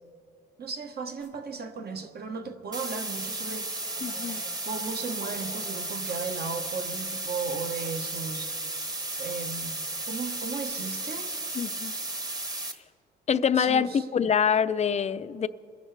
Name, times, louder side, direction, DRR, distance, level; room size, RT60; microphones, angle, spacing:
voice 1, 0.6-3.7 4.6-8.5 9.2-11.3 13.6-14.0, right 5 dB, 55° right, 1.3 m, -36 dB
sound 1, 1.2-1.3 3.1-6.4 8.7-10.4, right 3 dB, 75° right, 2.2 m, -50 dB
sound 2, 2.7-12.7, right 2 dB, 20° right, 1.2 m, -34 dB
voice 2, 4.0-4.4 11.6-11.9 13.3-15.5, left 7 dB, 35° left, 0.4 m, -25 dB
29.0 x 10.5 x 3.3 m
cardioid pair, 90°, 20 cm